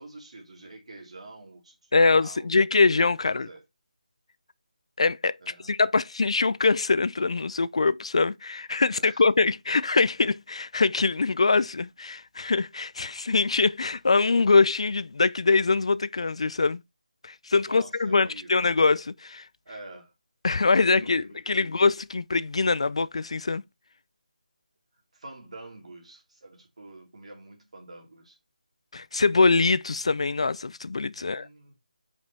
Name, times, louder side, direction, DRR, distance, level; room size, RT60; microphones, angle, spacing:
voice 1, 0.0-2.5 3.2-3.6 5.4-5.8 8.9-9.2 17.6-18.6 19.7-20.1 20.5-21.7 25.1-28.4 31.1-31.7, right 2 dB, 50° right, 2.3 m, -47 dB
voice 2, 1.9-3.5 5.0-5.3 5.6-16.8 17.2-19.4 20.4-23.6 28.9-31.5, left 4 dB, 45° left, 0.3 m, -23 dB
5.2 x 5.1 x 4.0 m
figure-of-eight pair, 175°, 4 cm